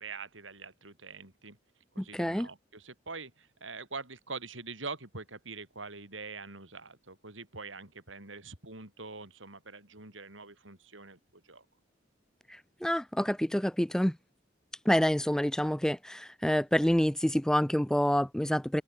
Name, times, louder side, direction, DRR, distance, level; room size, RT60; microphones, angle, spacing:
voice 1, 0.0-1.6 1.9-11.6, right 4 dB, 90° right, 6.0 m, -44 dB
voice 2, 2.0-2.5 12.5-14.2 14.9-18.8, equal, 5° left, 0.4 m, -27 dB
head